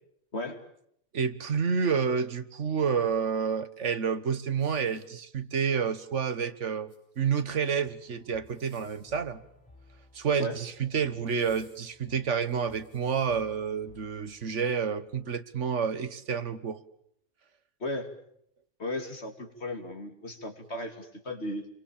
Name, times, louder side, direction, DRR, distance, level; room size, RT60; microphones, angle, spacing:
voice 1, 0.3-0.6 10.4-10.6 17.8-18.1 18.8-21.7, left 1 dB, 65° left, 6 dB, 3.1 m, -35 dB
voice 2, 1.1-9.4 10.1-16.8, right 6 dB, 80° right, 13 dB, 1.6 m, -29 dB
sound 1, 4.6-5.6 6.7-7.4 8.4-9.2 10.3-10.7 11.2-13.4 14.0-14.1, equal, 25° left, 6.9 m, -64 dB
sound 2, 7.9-15.1, left 2 dB, 5° left, 7.9 m, -59 dB
29.0 x 24.0 x 7.2 m, 0.72 s
omnidirectional pair, 1.2 m